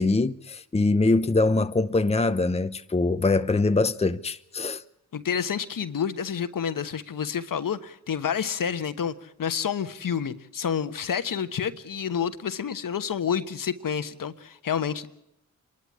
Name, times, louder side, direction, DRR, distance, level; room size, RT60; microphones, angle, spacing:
voice 1, 0.0-4.8, left 3 dB, 15° left, 0.8 m, -23 dB
voice 2, 5.1-15.1, left 7 dB, 60° left, 1.3 m, -29 dB
26.0 x 12.0 x 10.0 m
supercardioid pair, 45°, 37 cm